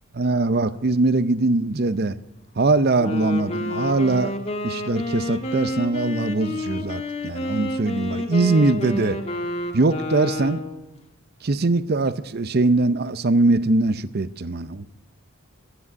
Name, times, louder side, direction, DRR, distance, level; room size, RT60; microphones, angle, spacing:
voice 1, 0.2-2.2 2.6-4.3 4.6-9.2 9.7-10.6 11.4-14.9, right 3 dB, 45° right, 0.6 m, -21 dB
Wind instrument woodwind instrument, 2.9-10.8, left 2 dB, 30° left, 1.4 m, -29 dB
14.0 x 9.8 x 9.4 m
head